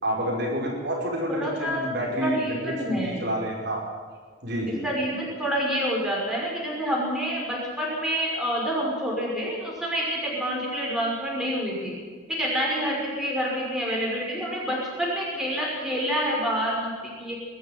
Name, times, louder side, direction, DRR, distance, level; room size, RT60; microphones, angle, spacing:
voice 1, 0.0-3.8 4.4-4.8, equal, 50° right, -2 dB, 5.3 m, -28 dB
voice 2, 1.3-1.8 2.2-3.2 4.8-11.9 12.3-17.3, equal, 5° right, -4 dB, 5.9 m, -28 dB
21.5 x 13.5 x 9.4 m, 1.5 s
head